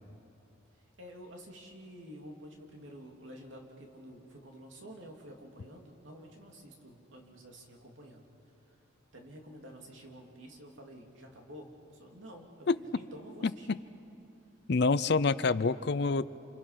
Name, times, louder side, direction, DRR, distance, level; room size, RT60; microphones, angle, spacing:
voice 1, 1.0-8.3 9.1-13.8, equal, 70° right, 1 dB, 2.8 m, -50 dB
voice 2, 13.4-13.8 14.7-16.3, left 4 dB, 55° left, 16 dB, 0.5 m, -27 dB
28.5 x 27.5 x 5.8 m, 2.8 s
head